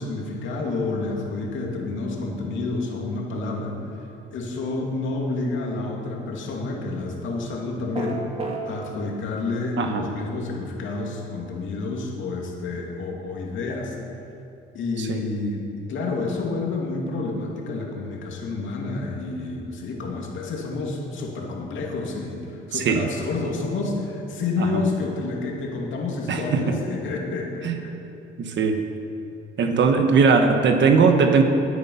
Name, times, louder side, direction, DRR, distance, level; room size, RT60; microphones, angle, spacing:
voice 1, 0.0-3.8 4.3-8.2 8.6-14.0 14.7-27.9, left 3 dB, 75° left, -1 dB, 2.7 m, -29 dB
sound 1, 7.9-8.6, right 3 dB, 30° right, 2.6 m, -29 dB
voice 2, 22.7-23.1 24.6-24.8 26.3-26.8 27.6-27.7 28.4-28.8 29.6-31.4, right 5 dB, 65° right, 5 dB, 1.2 m, -19 dB
17.5 x 9.7 x 5.7 m, 2.8 s
cardioid pair, 90°, 20 cm